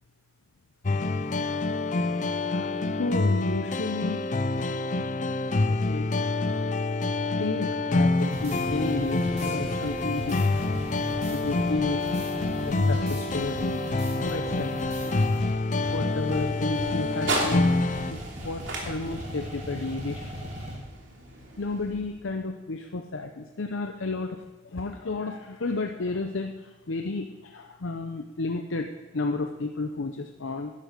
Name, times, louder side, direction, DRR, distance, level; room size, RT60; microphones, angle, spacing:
sound 1, 0.8-18.1, left 2 dB, 40° left, 0.5 m, -27 dB
voice 1, 3.0-4.6 5.7-6.1 7.4-10.5 11.3-12.1 12.7-13.8 14.2-15.2 15.9-17.7 18.1-20.5 21.6-28.9 29.1-30.7, left 3 dB, 80° left, 5 dB, 0.7 m, -32 dB
sound 2, 8.2-15.5 15.8-16.0 16.3-16.4 16.7-16.9 17.2-20.7, equal, 35° right, 3.3 m, -38 dB
sound 3, 14.4-22.5, right 2 dB, 70° right, 2.8 m, -38 dB
13.0 x 11.0 x 5.1 m, 1.1 s
head